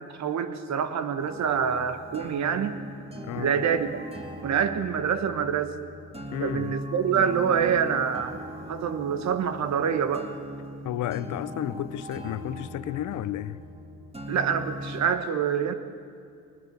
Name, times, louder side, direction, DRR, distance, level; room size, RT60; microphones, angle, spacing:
voice 1, 0.0-2.8 3.4-4.0 4.4-5.7 6.4-8.4 8.7-10.3 14.3-15.7, right 7 dB, 65° right, 1.5 m, -26 dB
sound 1, 1.2-15.1, equal, 20° right, 2.5 m, -40 dB
voice 2, 3.2-3.6 6.3-6.7 10.8-13.6, left 12 dB, 75° left, 0.8 m, -32 dB
21.5 x 20.0 x 6.9 m
cardioid pair, 90°, 30 cm